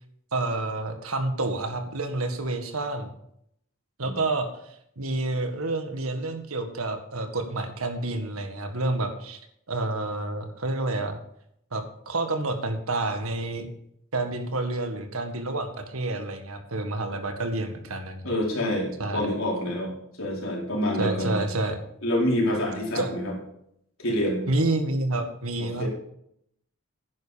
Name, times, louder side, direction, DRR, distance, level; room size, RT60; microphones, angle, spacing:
voice 1, 0.3-3.1 4.0-4.5 5.0-9.4 9.7-11.2 11.7-13.7 14.1-18.3 19.0-19.3 21.0-21.8 22.9-23.1 24.5-25.9, right 2 dB, 85° right, 7 dB, 1.8 m, -29 dB
voice 2, 18.2-19.9 20.2-21.5 22.0-23.3 24.0-24.4 25.6-25.9, left 1 dB, 75° left, -3 dB, 4.6 m, -27 dB
11.0 x 9.9 x 5.2 m, 0.73 s
head